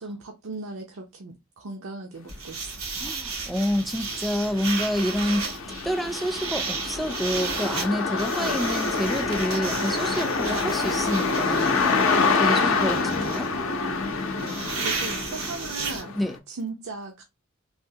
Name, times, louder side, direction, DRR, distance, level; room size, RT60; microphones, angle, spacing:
voice 1, 0.0-2.8 8.4-8.6 12.1-12.5 14.4-16.1 16.5-17.2, right 3 dB, 75° right, 0.6 m, -37 dB
sound 1, 2.3-16.0, right 4 dB, 90° right, 2.0 m, -34 dB
sound 2, 3.0-3.1 3.5-16.4, left 4 dB, 65° left, 0.6 m, -27 dB
voice 2, 3.0-5.4 5.8-11.8 12.2-13.5 16.2-16.4, equal, ahead, 0.3 m, -28 dB
3.5 x 2.7 x 2.7 m
head